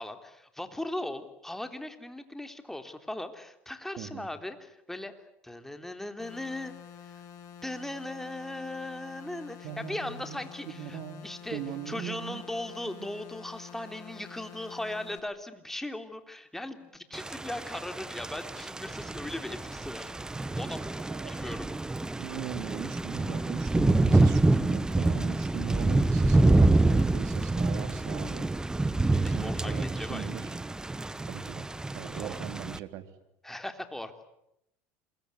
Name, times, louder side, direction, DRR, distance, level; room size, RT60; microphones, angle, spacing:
voice 1, 0.0-5.1 5.4-6.7 7.0-7.2 7.6-21.7 29.2-30.3 32.1-32.4 33.4-34.1, left 1 dB, 5° left, 7 dB, 3.4 m, -38 dB
voice 2, 4.0-4.3 9.6-10.4 10.7-11.2 11.5-12.4 12.9-13.1 21.1-21.5 22.2-28.5 29.1-30.5 31.3-31.7 31.9-33.1, right 10 dB, 65° right, 10 dB, 3.1 m, -40 dB
sound 1, 6.2-15.2, left 8 dB, 55° left, 6.8 m, -48 dB
Thunder / Rain, 17.1-32.8, right 2 dB, 10° right, 1.0 m, -27 dB
27.0 x 22.0 x 9.8 m, 0.81 s
hypercardioid pair, 90°, 7 cm